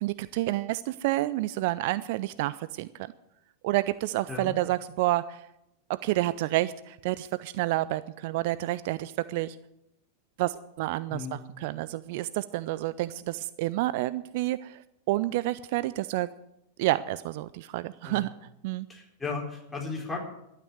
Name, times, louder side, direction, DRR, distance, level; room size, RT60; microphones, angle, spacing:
voice 1, 0.0-2.9 3.6-5.4 5.9-9.6 10.4-14.8 15.1-16.3 16.8-18.3 18.6-18.9, right 17 dB, 50° right, 16 dB, 0.4 m, -29 dB
voice 2, 18.9-20.2, left 4 dB, 10° left, -2 dB, 4.4 m, -35 dB
12.0 x 9.2 x 9.4 m, 0.86 s
figure-of-eight pair, 90°, 0 cm